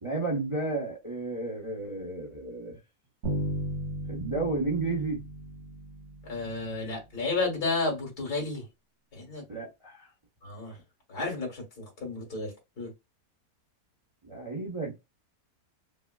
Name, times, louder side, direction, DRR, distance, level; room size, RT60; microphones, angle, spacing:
voice 1, 0.0-2.8 4.1-5.2 9.5-10.1 14.2-14.9, right 3 dB, 25° right, 0.9 m, -32 dB
Bass guitar, 3.2-7.0, right 1 dB, 90° right, 2.2 m, -35 dB
voice 2, 6.2-8.6 9.1-9.4 10.4-10.8 11.1-12.9, left 3 dB, 75° left, 2.4 m, -32 dB
5.3 x 2.1 x 2.3 m
omnidirectional pair, 1.6 m